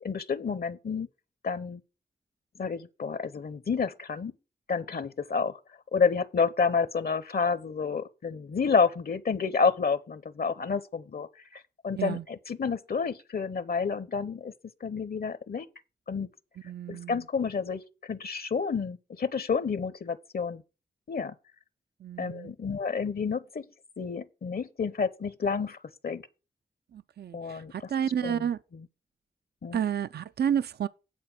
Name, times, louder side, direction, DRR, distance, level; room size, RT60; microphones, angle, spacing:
voice 1, 0.0-1.1 1.4-1.8 2.6-4.3 4.7-5.6 5.9-14.5 14.8-15.7 16.1-16.3 16.9-20.6 21.1-21.3 22.2-23.7 24.0-25.8 26.0-26.2 27.3-27.9 28.2-28.9 29.6-29.8, left 5 dB, 60° left, 0.7 m, -29 dB
voice 2, 16.7-17.2 22.0-22.5 26.9-28.6 29.7-30.9, right 9 dB, 65° right, 0.4 m, -30 dB
9.0 x 4.3 x 7.4 m
cardioid pair, 55°, 18 cm